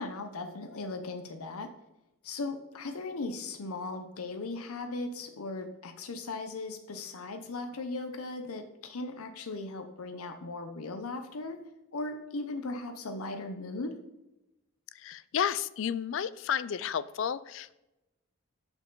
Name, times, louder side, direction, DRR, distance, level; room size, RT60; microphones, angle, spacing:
voice 1, 0.0-1.7 2.2-11.6 11.9-14.0, left 3 dB, 90° left, 7 dB, 0.7 m, -38 dB
voice 2, 15.0-17.8, left 8 dB, 60° left, 17 dB, 0.3 m, -32 dB
6.7 x 5.8 x 3.8 m, 0.96 s
head